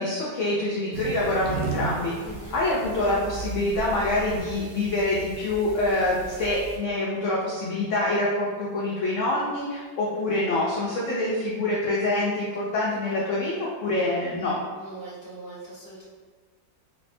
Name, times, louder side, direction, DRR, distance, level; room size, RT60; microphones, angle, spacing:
voice 1, 0.0-2.1 2.5-14.6, left 2 dB, 65° left, -5 dB, 0.7 m, -26 dB
sound 1, 0.9-6.8, right 4 dB, 70° right, 0.9 m, -36 dB
voice 2, 2.2-2.6 14.8-16.0, right 2 dB, 15° right, -11 dB, 1.0 m, -41 dB
3.3 x 3.2 x 2.6 m, 1.4 s
omnidirectional pair, 1.9 m